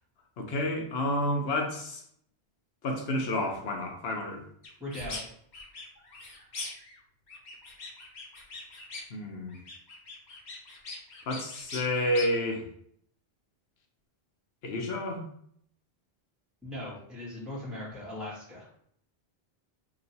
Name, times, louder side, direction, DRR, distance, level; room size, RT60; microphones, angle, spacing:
voice 1, 0.4-2.0 2.8-4.4 9.1-9.6 11.3-12.6 14.6-15.2, left 1 dB, 70° left, 2 dB, 1.0 m, -30 dB
sound 1, 4.6-5.2 5.5-7.0 7.3-9.2 9.5-12.3, left 2 dB, 50° left, 0.9 m, -42 dB
voice 2, 4.8-5.2 16.6-18.7, left 1 dB, ahead, -7 dB, 1.3 m, -39 dB
3.0 x 2.7 x 4.0 m, 0.66 s
omnidirectional pair, 1.1 m